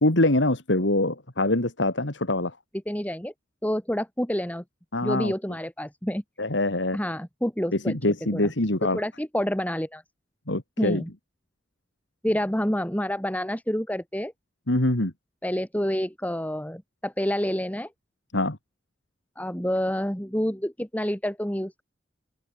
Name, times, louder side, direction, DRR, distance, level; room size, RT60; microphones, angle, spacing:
voice 1, 0.0-2.5 4.9-5.3 6.4-7.0 7.7-9.0 10.5-11.0 14.7-15.1 18.3-18.6, left 1 dB, 85° left, 3.1 m, -24 dB
voice 2, 2.9-3.3 3.6-4.6 5.0-6.2 6.9-8.5 8.9-10.0 10.8-11.1 12.2-14.3 15.4-17.9 19.4-21.8, equal, 10° left, 3.4 m, -28 dB
open air
head